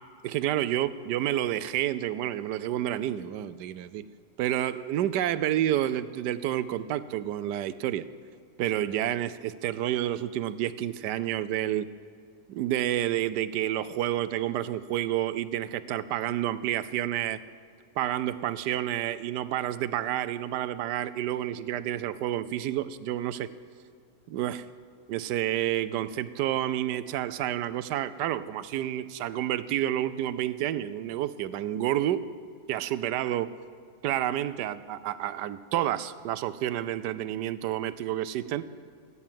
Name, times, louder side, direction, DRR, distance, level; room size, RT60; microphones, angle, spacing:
voice 1, 0.2-4.0 4.4-8.1 8.6-11.9 12.5-17.4 18.0-23.5 24.3-24.7 25.1-32.3 32.7-33.5 34.0-38.6, right 12 dB, 75° right, 15 dB, 1.2 m, -29 dB
16.0 x 9.9 x 7.4 m, 2.2 s
omnidirectional pair, 1.9 m